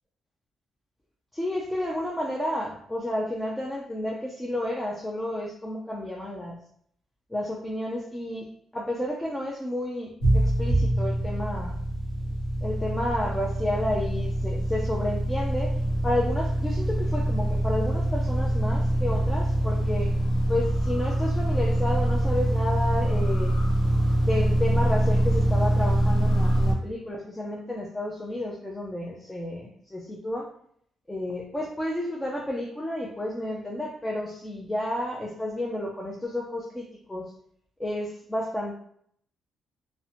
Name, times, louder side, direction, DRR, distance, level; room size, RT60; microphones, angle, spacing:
voice 1, 1.3-6.6 7.3-8.5 8.7-11.8 12.6-15.7 16.0-20.1 20.5-23.5 24.2-30.5 31.1-37.3 37.8-38.8, left 1 dB, 10° left, -2 dB, 0.4 m, -31 dB
sound 1, 10.2-26.7, right 1 dB, 55° left, 0.9 m, -24 dB
2.6 x 2.1 x 2.7 m, 0.65 s
cardioid pair, 90°, 0 cm